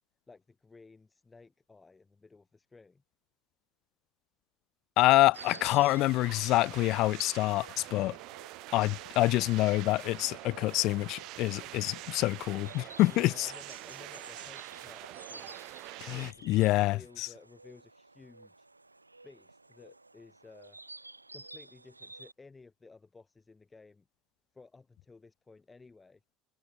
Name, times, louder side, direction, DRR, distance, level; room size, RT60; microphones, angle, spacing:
voice 1, 0.3-3.0 13.0-15.5 16.0-18.7 19.2-20.8 21.3-24.1 24.5-26.2, left 3 dB, 15° left, 2.4 m, -55 dB
voice 2, 5.0-8.2 8.7-13.5 16.1-17.3, left 18 dB, 50° left, 0.3 m, -26 dB
sound 1, 5.3-16.3, right 20 dB, 50° right, 1.2 m, -45 dB
Insect, 5.3-22.3, right 2 dB, 85° right, 1.6 m, -53 dB
figure-of-eight pair, 65°, 0 cm